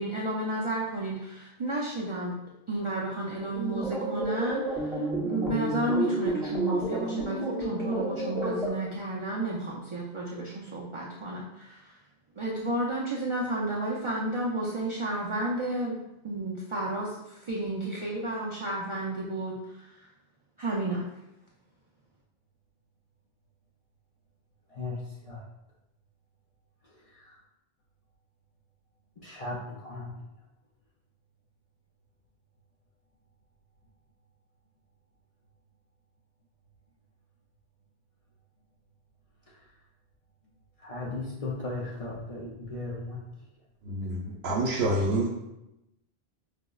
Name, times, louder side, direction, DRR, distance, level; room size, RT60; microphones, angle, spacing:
voice 1, 0.0-2.3 2.7-12.0 12.4-20.1 20.6-21.1, right 1 dB, 55° right, -4 dB, 0.3 m, -32 dB
sound 1, 3.5-8.7, right 2 dB, ahead, 0.6 m, -31 dB
voice 2, 29.2-30.1 40.8-43.2, left 2 dB, 45° left, -5 dB, 0.5 m, -36 dB
voice 3, 43.8-45.3, right 1 dB, 85° right, -4 dB, 0.8 m, -27 dB
5.0 x 2.0 x 2.2 m, 0.90 s
omnidirectional pair, 1.0 m